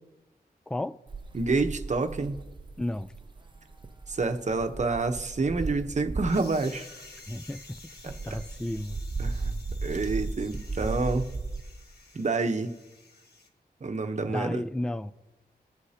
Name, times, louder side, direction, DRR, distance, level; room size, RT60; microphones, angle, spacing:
voice 1, 0.7-1.0 2.8-3.1 7.3-7.8 8.0-9.0 14.3-15.1, left 1 dB, 5° left, 0.4 m, -33 dB
sound 1, 1.1-6.6 7.0-11.6, right 3 dB, 30° right, 0.7 m, -36 dB
voice 2, 1.3-2.4 4.1-6.9 8.0-8.4 9.2-9.6 9.8-11.3 12.1-12.7 13.8-14.6, right 3 dB, 45° right, 0.9 m, -28 dB
sound 2, 6.3-13.5, left 3 dB, 85° left, 1.6 m, -51 dB
22.5 x 8.1 x 2.9 m
wide cardioid pair, 105°, 16 cm